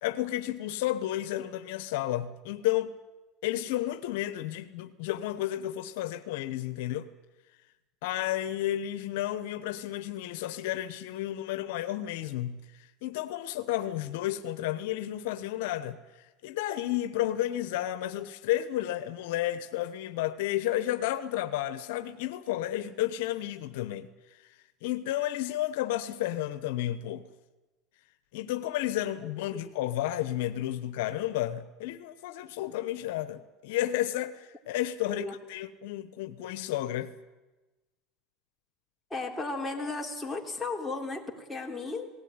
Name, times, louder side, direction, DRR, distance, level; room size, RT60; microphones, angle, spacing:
voice 1, 0.0-2.9 3.4-7.1 8.0-16.0 16.4-24.5 24.8-27.3 28.3-37.1, left 13 dB, 80° left, 1.1 m, -32 dB
voice 2, 39.1-42.1, left 3 dB, 10° left, 3.4 m, -35 dB
18.5 x 17.5 x 9.7 m
supercardioid pair, 115°, 0 cm